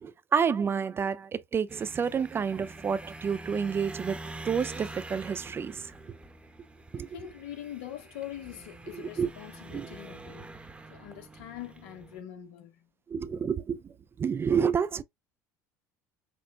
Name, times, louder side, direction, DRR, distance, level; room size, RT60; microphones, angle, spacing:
voice 1, 0.0-4.2 4.4-5.9 6.9-7.1 8.9-9.3 9.7-9.9 13.1-13.9 14.2-15.0, right 6 dB, 30° right, 0.4 m, -29 dB
sound 1, 1.7-12.2, right 2 dB, 15° right, 1.0 m, -45 dB
voice 2, 6.9-10.6 10.9-12.9, left 12 dB, 75° left, 1.4 m, -43 dB
6.0 x 2.4 x 2.2 m
hypercardioid pair, 80°, 8 cm